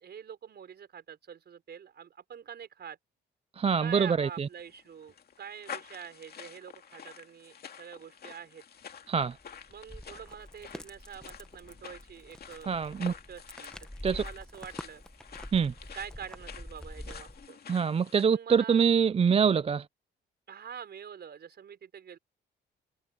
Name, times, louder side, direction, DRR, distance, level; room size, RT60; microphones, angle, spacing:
voice 1, 0.0-3.0 3.8-8.6 9.7-13.7 14.1-15.0 15.9-17.6 18.1-18.8 20.5-22.2, right 8 dB, 55° right, 5.0 m, -45 dB
voice 2, 3.6-4.5 9.1-9.4 12.7-13.1 14.0-14.2 15.5-15.7 17.7-19.9, right 6 dB, 30° right, 0.5 m, -25 dB
sound 1, 4.4-18.3, left 7 dB, 50° left, 2.3 m, -49 dB
sound 2, 9.1-17.5, left 1 dB, 5° left, 1.0 m, -46 dB
cardioid pair, 90°, 20 cm